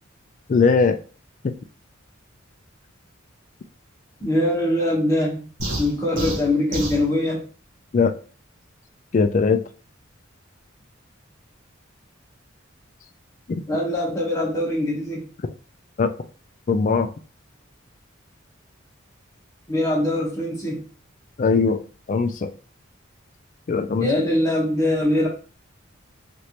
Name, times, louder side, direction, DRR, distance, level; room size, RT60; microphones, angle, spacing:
voice 1, 0.5-1.0 7.9-8.1 9.1-9.6 13.5-13.6 16.0-16.1 16.7-17.1 21.4-21.8 22.1-22.5 23.7-24.1, left 4 dB, 40° left, 8 dB, 0.3 m, -19 dB
voice 2, 4.2-5.5 5.8-7.5 13.7-15.3 19.7-20.8 24.0-25.3, left 1 dB, 15° left, -4 dB, 1.1 m, -22 dB
sound 1, 5.6-7.1, right 1 dB, 85° right, 1.1 m, -29 dB
3.2 x 2.6 x 2.9 m, 0.38 s
head